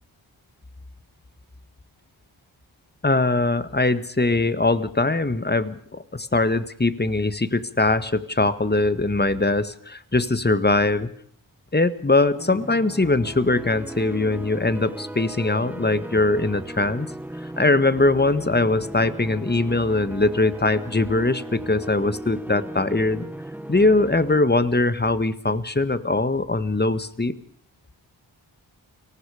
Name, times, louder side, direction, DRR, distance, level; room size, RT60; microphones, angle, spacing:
voice 1, 3.0-11.1 11.7-17.1 17.6-23.3 23.7-27.3, left 2 dB, 20° left, 13 dB, 1.7 m, -21 dB
sound 1, 12.4-24.4, right 1 dB, 5° right, 1.2 m, -37 dB
29.5 x 19.0 x 5.1 m, 0.65 s
cardioid pair, 40°, 47 cm